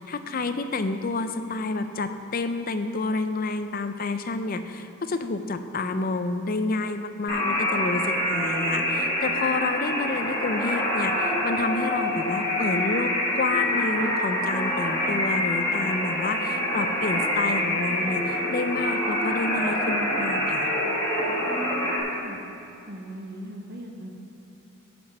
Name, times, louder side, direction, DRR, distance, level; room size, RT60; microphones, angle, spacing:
voice 1, 0.0-20.7, left 3 dB, 40° left, 9 dB, 0.4 m, -29 dB
sound 1, 7.3-22.0, left 1 dB, 15° left, 1.9 m, -26 dB
voice 2, 21.3-22.4 22.9-24.1, equal, 45° right, 2 dB, 0.8 m, -40 dB
9.4 x 6.0 x 6.4 m, 2.9 s
head